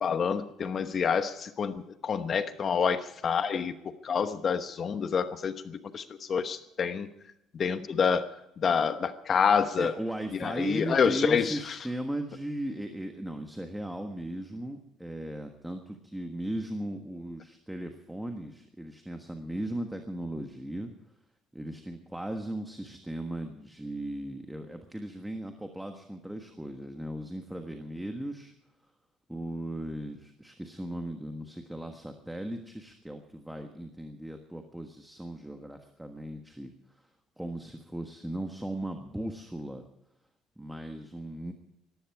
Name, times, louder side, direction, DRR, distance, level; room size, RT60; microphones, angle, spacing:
voice 1, 0.0-3.7 4.0-7.1 7.5-8.3 8.6-9.9 10.4-11.8, left 6 dB, 35° left, 10 dB, 1.1 m, -27 dB
voice 2, 9.8-20.9 21.5-28.5 29.3-36.7 37.4-39.8 40.6-41.5, right 1 dB, 5° right, 5 dB, 1.4 m, -37 dB
20.0 x 15.0 x 4.8 m, 0.84 s
cardioid pair, 135°, 0 cm